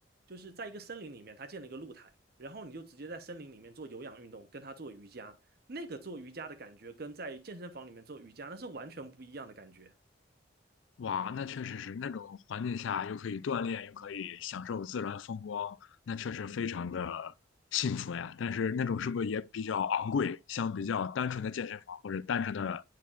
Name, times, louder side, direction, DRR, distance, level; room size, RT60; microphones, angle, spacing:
voice 1, 0.3-2.1 2.4-5.4 5.7-9.9, right 3 dB, 50° right, 0.8 m, -44 dB
voice 2, 11.0-15.8 16.1-17.3 17.7-22.8, left 6 dB, 75° left, 0.4 m, -34 dB
10.0 x 4.7 x 2.4 m
head